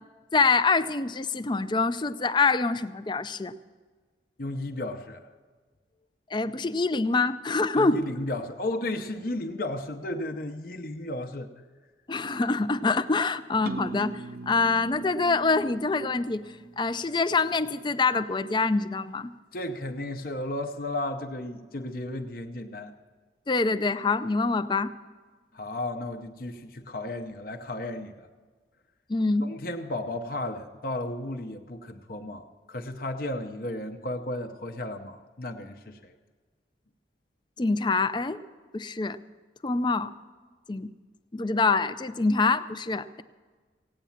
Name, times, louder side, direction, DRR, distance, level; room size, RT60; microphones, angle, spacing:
voice 1, 0.3-3.5 6.3-8.0 12.1-16.4 16.8-19.3 23.5-24.9 29.1-29.5 37.6-38.4 38.7-39.2 39.6-40.1 40.7-40.9 41.3-43.2, left 3 dB, 25° left, 13 dB, 0.4 m, -25 dB
voice 2, 4.4-5.2 7.8-11.5 19.5-22.9 25.5-28.3 29.4-36.1, left 1 dB, 50° left, 5 dB, 0.8 m, -34 dB
sound 1, 13.7-17.5, right 2 dB, 55° right, 0.7 m, -40 dB
17.0 x 9.2 x 7.2 m, 1.4 s
head